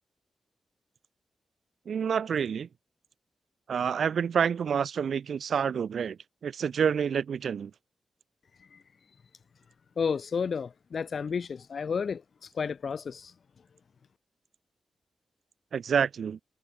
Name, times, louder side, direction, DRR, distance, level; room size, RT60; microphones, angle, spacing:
voice 1, 1.8-2.7 3.7-7.7 15.7-16.4, right 7 dB, 75° right, 4.8 m, -28 dB
voice 2, 10.0-12.2 12.5-13.3, left 6 dB, 60° left, 4.9 m, -31 dB
wide cardioid pair, 105°, 0 cm